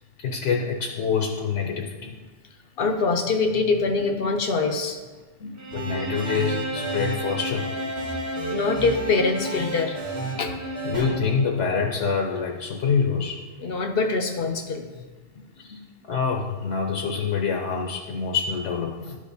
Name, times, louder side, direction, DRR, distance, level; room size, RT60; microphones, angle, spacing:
voice 1, 0.2-2.2 5.7-7.7 10.8-13.4 15.6-15.8 16.1-19.2, left 5 dB, 75° left, 1 dB, 1.0 m, -26 dB
voice 2, 2.8-5.0 5.4-5.6 8.5-10.8 13.6-14.9, left 4 dB, 60° left, 5 dB, 0.7 m, -24 dB
Bowed string instrument, 5.6-11.4, right 1 dB, 20° right, 0.4 m, -33 dB
sound 1, 5.7-7.1 7.5-10.3 10.7-11.0, right 2 dB, 70° right, 2.0 m, -33 dB
12.0 x 5.0 x 2.7 m, 1.3 s
omnidirectional pair, 1.2 m